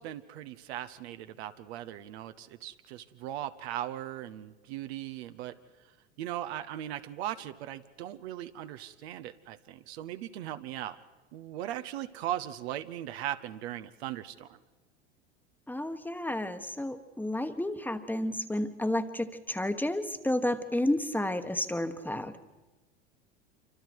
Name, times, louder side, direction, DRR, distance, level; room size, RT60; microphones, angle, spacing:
voice 1, 0.0-5.6 6.2-11.0 11.3-14.6, right 12 dB, 65° right, 10 dB, 1.0 m, -38 dB
voice 2, 15.7-22.4, left 1 dB, 5° left, 9 dB, 1.3 m, -31 dB
27.5 x 25.5 x 4.7 m, 1.2 s
hypercardioid pair, 85°, 34 cm